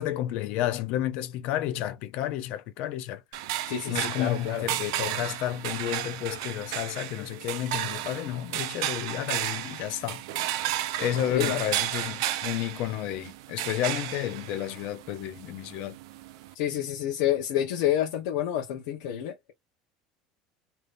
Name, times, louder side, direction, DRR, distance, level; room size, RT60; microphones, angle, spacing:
voice 1, 0.0-3.2 3.9-10.2 11.0-16.0, left 12 dB, 55° left, 0.6 m, -31 dB
sound 1, 3.3-16.5, right 13 dB, 85° right, 0.5 m, -33 dB
voice 2, 3.7-4.7 11.3-11.6 16.5-19.5, left 11 dB, 80° left, 0.9 m, -28 dB
3.4 x 2.9 x 2.5 m
cardioid pair, 165°, 3 cm